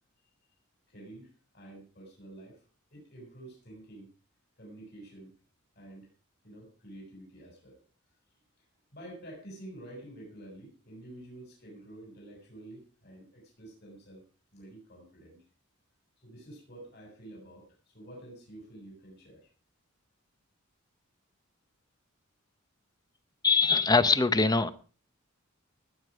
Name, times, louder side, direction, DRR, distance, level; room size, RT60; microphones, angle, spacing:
voice 1, 0.9-1.3 1.5-2.6 2.9-4.1 4.6-5.3 5.8-6.1 6.4-7.8 8.6-8.7 8.9-14.2 14.5-15.4 16.2-19.5, right 1 dB, 50° left, -2 dB, 7.4 m, -49 dB
voice 2, 23.4-24.7, left 4 dB, 20° left, 13 dB, 0.8 m, -23 dB
19.0 x 9.5 x 5.0 m, 0.38 s
head